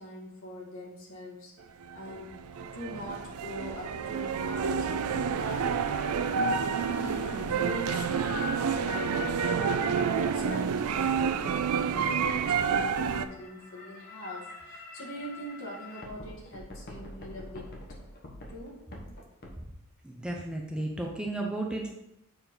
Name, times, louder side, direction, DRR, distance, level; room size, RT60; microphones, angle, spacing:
voice 1, 0.0-1.5 1.9-4.9 5.4-5.9 6.8-17.7 18.5-18.9, left 1 dB, 65° left, -3 dB, 2.0 m, -43 dB
sound 1, 1.8-13.3, right 6 dB, 80° right, 0.4 m, -29 dB
sound 2, 4.3-19.6, left 4 dB, 45° left, 1.1 m, -44 dB
voice 2, 20.0-21.9, right 2 dB, 5° right, 0 dB, 0.6 m, -33 dB
6.9 x 4.3 x 3.8 m, 0.85 s
head